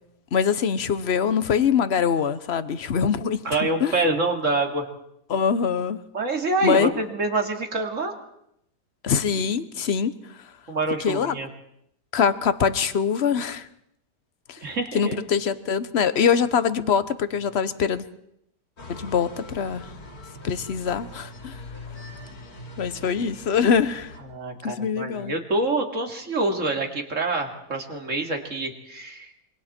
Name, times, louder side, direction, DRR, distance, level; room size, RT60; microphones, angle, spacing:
voice 1, 0.3-3.9 5.3-6.0 6.6-6.9 9.0-10.1 11.0-11.4 12.1-13.7 14.5-14.6 14.9-18.0 18.9-19.9 20.4-21.6 22.8-24.1 24.6-25.3, left 7 dB, 45° left, 13 dB, 1.1 m, -23 dB
voice 2, 3.4-4.9 6.1-8.1 10.7-11.5 14.6-15.3 24.3-29.3, right 2 dB, 50° right, 3 dB, 2.8 m, -26 dB
sound 1, 18.8-24.2, left 1 dB, 65° left, 3.1 m, -42 dB
26.5 x 24.0 x 4.4 m, 0.75 s
omnidirectional pair, 1.8 m